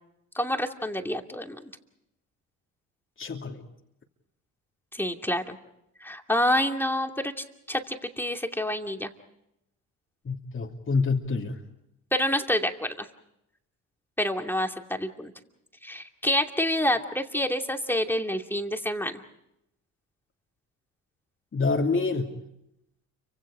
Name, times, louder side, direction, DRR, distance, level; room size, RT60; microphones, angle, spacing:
voice 1, 0.3-1.7 4.9-5.6 6.0-9.1 12.1-13.1 14.2-15.3 15.8-19.1, left 1 dB, 5° left, 4 dB, 2.6 m, -28 dB
voice 2, 3.2-3.6 10.2-11.6 21.5-22.4, left 4 dB, 35° left, 0 dB, 2.7 m, -27 dB
30.0 x 25.0 x 5.0 m, 0.82 s
supercardioid pair, 70°, 37 cm